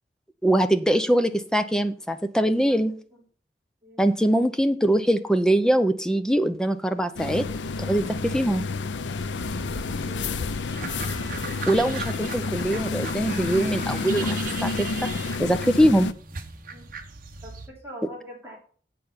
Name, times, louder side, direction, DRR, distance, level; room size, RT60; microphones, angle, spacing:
voice 1, 0.4-2.9 4.0-7.5 7.8-8.6 11.7-15.1 15.4-16.1, right 1 dB, 5° left, 9 dB, 0.8 m, -22 dB
sound 1, 7.2-16.1, left 4 dB, 90° left, 0.6 m, -30 dB
sound 2, 9.2-17.7, right 4 dB, 50° right, 1.3 m, -39 dB
voice 2, 9.7-10.5 16.7-16.9 17.4-18.6, equal, 15° right, -4 dB, 3.5 m, -44 dB
8.3 x 6.7 x 5.7 m, 0.42 s
head